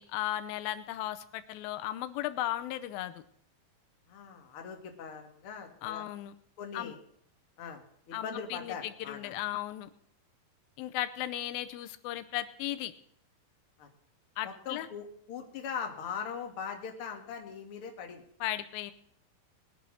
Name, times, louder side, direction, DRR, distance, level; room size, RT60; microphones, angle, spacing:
voice 1, 0.0-3.2 5.8-6.3 6.7-6.9 8.1-9.9 10.8-12.9 14.4-14.9 18.4-18.9, left 13 dB, 85° left, 11 dB, 2.5 m, -36 dB
voice 2, 4.1-6.0 6.6-7.0 7.6-9.4 13.8-13.9 14.4-18.2, left 6 dB, 45° left, 3 dB, 2.2 m, -41 dB
20.5 x 7.1 x 6.2 m, 0.67 s
omnidirectional pair, 4.1 m